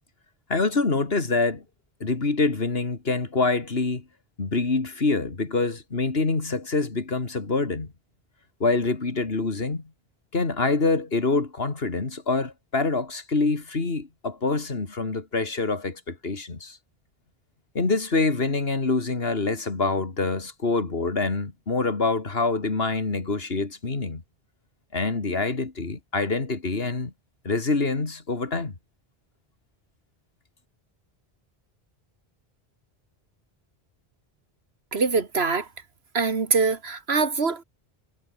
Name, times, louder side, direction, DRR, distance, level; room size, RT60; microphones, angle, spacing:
voice 1, 0.5-1.6 2.0-4.0 4.4-7.9 8.6-9.8 10.3-16.8 17.7-24.2 24.9-27.1 27.4-28.7, left 3 dB, 75° left, 2.7 m, -25 dB
voice 2, 34.9-35.7 36.1-37.6, right 4 dB, 85° right, 2.2 m, -23 dB
omnidirectional pair, 1.0 m